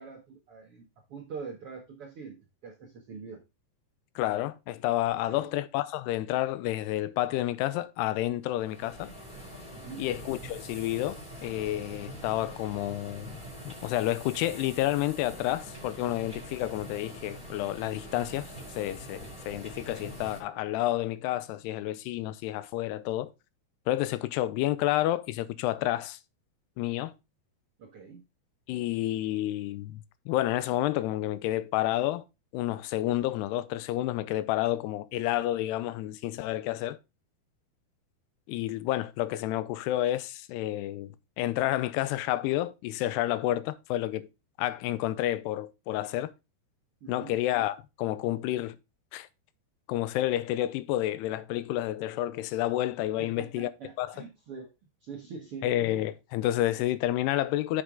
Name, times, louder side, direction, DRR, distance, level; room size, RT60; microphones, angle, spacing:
voice 1, 0.0-2.4 2.6-3.4 5.1-5.5 9.7-10.0 27.8-28.2 47.0-47.4 53.2-54.7 55.0-56.0, right 5 dB, 70° right, 1.3 m, -44 dB
voice 2, 4.2-9.1 10.0-13.4 13.7-23.3 23.9-26.2 26.8-27.1 28.7-32.2 32.5-37.0 38.5-44.3 44.6-46.3 47.1-48.8 49.1-49.3 49.9-53.7 54.0-54.2 55.6-57.8, left 14 dB, 90° left, 2.7 m, -30 dB
sound 1, 8.5-20.4, equal, 10° left, 3.3 m, -44 dB
8.1 x 6.7 x 3.6 m
omnidirectional pair, 4.7 m